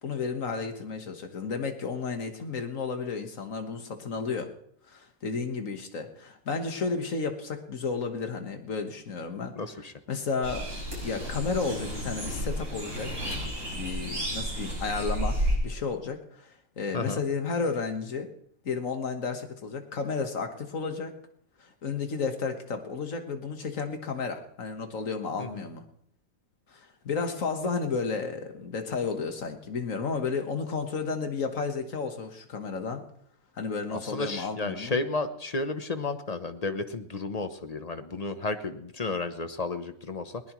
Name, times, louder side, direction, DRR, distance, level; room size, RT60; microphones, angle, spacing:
voice 1, 0.0-4.5 4.9-9.5 10.1-10.7 11.0-15.4 15.6-18.3 18.6-21.1 21.6-25.8 26.7-33.0 33.5-35.0, left 4 dB, 65° left, 6 dB, 1.8 m, -32 dB
voice 2, 9.6-9.9 16.9-17.2 25.4-25.7 33.9-40.4, left 3 dB, 35° left, 9 dB, 0.7 m, -32 dB
sound 1, 10.4-15.6, equal, 65° right, 6.6 m, -32 dB
20.5 x 19.0 x 3.1 m, 0.70 s
omnidirectional pair, 1.5 m